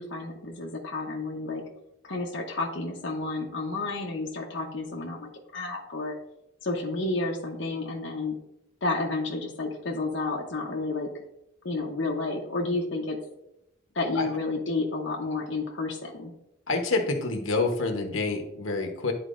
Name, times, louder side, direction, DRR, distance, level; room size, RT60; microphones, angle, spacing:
voice 1, 0.0-1.6 2.0-6.2 6.6-8.4 8.8-11.1 11.6-13.2 13.9-16.3, left 3 dB, 60° left, -1 dB, 0.8 m, -31 dB
voice 2, 16.7-19.1, left 3 dB, 85° left, 4 dB, 1.0 m, -27 dB
10.5 x 4.4 x 2.5 m, 0.84 s
head